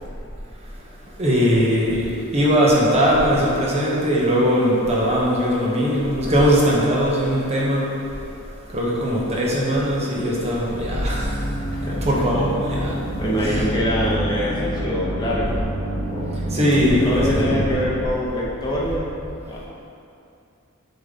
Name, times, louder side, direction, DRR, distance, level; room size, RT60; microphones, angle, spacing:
voice 1, 1.2-7.8 8.7-11.4 12.0-13.0 13.4-13.6 16.5-17.6, equal, 30° right, -5 dB, 1.1 m, -20 dB
sound 1, 10.7-17.8, right 1 dB, 50° left, 1.0 m, -27 dB
voice 2, 13.2-16.6 17.0-19.1 19.5-19.6, equal, 20° left, -5 dB, 1.0 m, -25 dB
7.4 x 3.9 x 3.8 m, 2.6 s
head